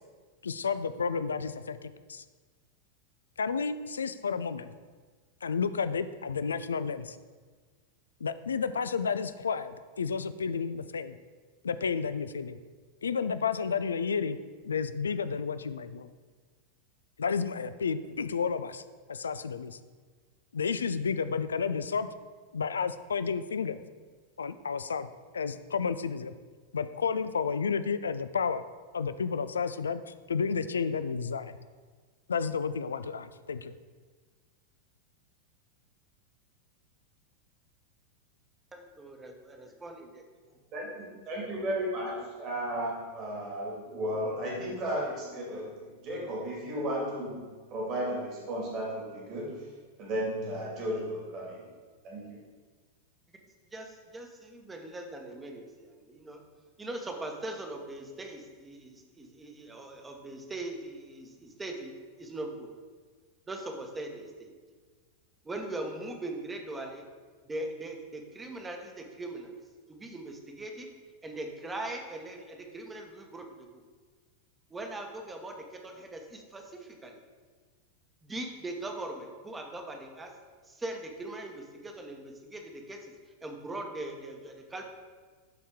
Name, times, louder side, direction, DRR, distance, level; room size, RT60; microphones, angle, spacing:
voice 1, 0.4-2.2 3.4-4.7 5.4-7.2 8.2-11.2 11.6-12.6 13.0-14.4 14.6-16.1 17.2-18.8 19.1-19.8 20.5-22.1 22.5-23.8 24.4-25.1 25.3-26.3 26.7-28.7 28.9-31.5 32.3-33.8, left 5 dB, 70° left, 13 dB, 0.3 m, -31 dB
voice 2, 38.7-40.0 53.7-56.4 56.8-61.9 62.2-62.7 63.5-64.5 65.4-67.1 67.4-69.5 69.9-70.9 71.2-73.7 74.7-75.6 75.8-77.2 78.2-80.3 80.7-83.1 83.4-84.8, right 2 dB, 15° right, 3 dB, 1.1 m, -40 dB
voice 3, 41.3-42.1 42.4-49.7 50.0-51.6 52.0-52.4, equal, 40° right, -3 dB, 2.1 m, -34 dB
12.0 x 4.2 x 3.6 m, 1.5 s
figure-of-eight pair, 90°, 0 cm